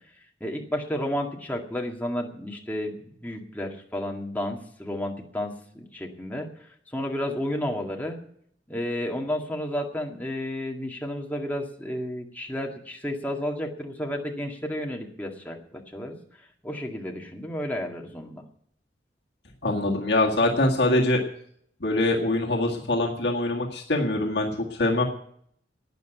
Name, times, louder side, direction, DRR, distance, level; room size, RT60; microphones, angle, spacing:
voice 1, 0.4-6.5 6.9-8.2 8.7-16.2 16.6-18.4, left 1 dB, 10° left, 1 dB, 2.0 m, -32 dB
voice 2, 19.6-21.2 21.8-25.1, left 2 dB, 70° left, 0 dB, 2.0 m, -23 dB
12.0 x 9.3 x 9.2 m, 0.66 s
head